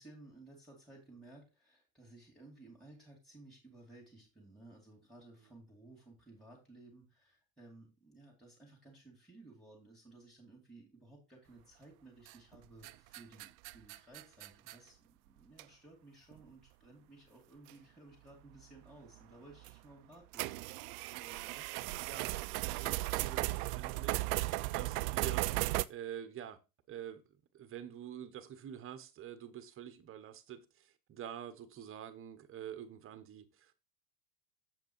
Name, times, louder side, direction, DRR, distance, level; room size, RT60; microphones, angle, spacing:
voice 1, 0.0-20.6, right 2 dB, ahead, 2.5 m, -57 dB
sound 1, 12.3-12.6 12.8-14.8 15.6-15.7 16.3-16.4 17.7-17.8 19.6-19.7 20.3-25.9, right 20 dB, 60° right, 0.5 m, -36 dB
voice 2, 21.2-24.2 24.7-25.5 25.9-26.6 26.9-33.8, right 9 dB, 25° right, 1.0 m, -47 dB
7.6 x 5.2 x 4.5 m
supercardioid pair, 130°, 48 cm